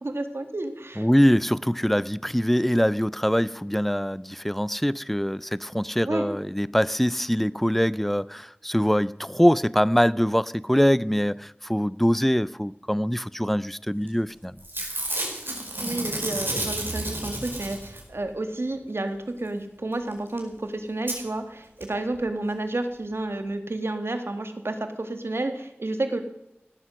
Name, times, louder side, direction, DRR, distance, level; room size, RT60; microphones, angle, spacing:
voice 1, 0.0-1.1 6.1-6.2 15.8-26.2, right 2 dB, 80° right, 1.8 m, -30 dB
voice 2, 1.0-14.6, equal, 5° left, 0.5 m, -23 dB
Packing tape duct tape / Tearing, 14.1-14.3 14.6-18.2 20.1-20.2 20.4-20.5 21.1-21.2 21.8-21.9 22.1-22.2, right 1 dB, 60° right, 4.6 m, -31 dB
17.0 x 12.0 x 6.2 m
wide cardioid pair, 45°, 4 cm